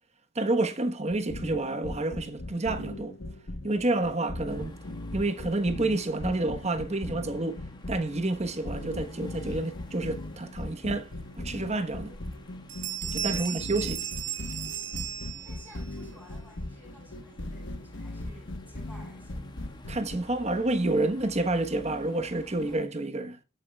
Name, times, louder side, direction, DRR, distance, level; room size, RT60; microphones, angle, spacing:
voice 1, 0.3-3.1 3.6-4.7 5.1-7.6 7.9-11.1 11.4-12.1 13.1-14.0 19.9-23.4, right 2 dB, 35° right, 1.2 m, -29 dB
sound 1, 1.1-20.2, left 1 dB, 85° left, 1.3 m, -39 dB
sound 2, 4.5-22.8, left 1 dB, 25° left, 1.6 m, -52 dB
Bell, 12.3-12.4 12.7-15.8, right 12 dB, 80° right, 1.9 m, -35 dB
voice 2, 13.3-13.8 15.4-19.5, left 1 dB, 10° right, 7.3 m, -54 dB
21.5 x 9.0 x 2.3 m
head